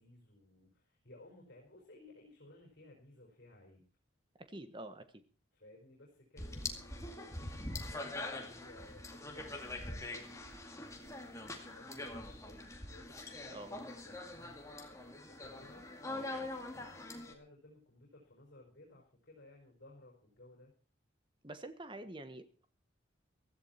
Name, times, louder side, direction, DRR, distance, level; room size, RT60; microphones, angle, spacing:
voice 1, 0.0-3.9 5.5-20.7, left 1 dB, 55° left, 0 dB, 5.0 m, -58 dB
voice 2, 4.4-5.2 13.5-13.7 21.4-22.7, right 1 dB, 25° right, 10 dB, 1.4 m, -47 dB
sound 1, 6.4-17.3, left 2 dB, 15° left, 2.2 m, -44 dB
16.0 x 14.5 x 4.4 m, 0.36 s
head